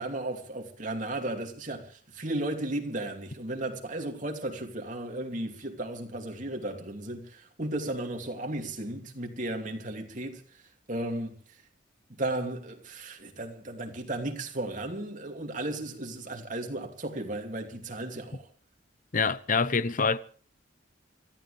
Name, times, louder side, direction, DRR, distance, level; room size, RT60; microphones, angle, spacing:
voice 1, 0.0-10.4 10.9-11.4 12.1-18.5, right 1 dB, 45° right, 2.7 m, -35 dB
voice 2, 19.1-20.2, left 5 dB, 45° left, 0.8 m, -25 dB
28.0 x 14.5 x 3.4 m
head